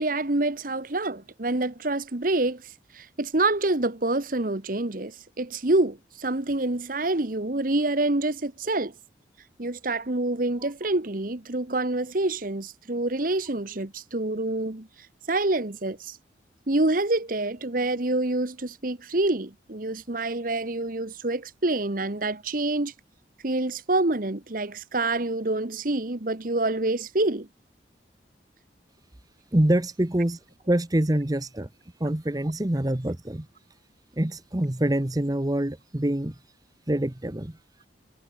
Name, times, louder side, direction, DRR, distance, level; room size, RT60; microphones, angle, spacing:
voice 1, 0.0-8.9 9.6-14.9 15.3-16.2 16.7-22.9 23.4-27.5, right 2 dB, 50° right, 1.3 m, -27 dB
voice 2, 29.5-30.4 30.7-31.7 32.0-33.5 34.1-36.4 36.9-37.6, right 1 dB, 20° right, 0.9 m, -25 dB
head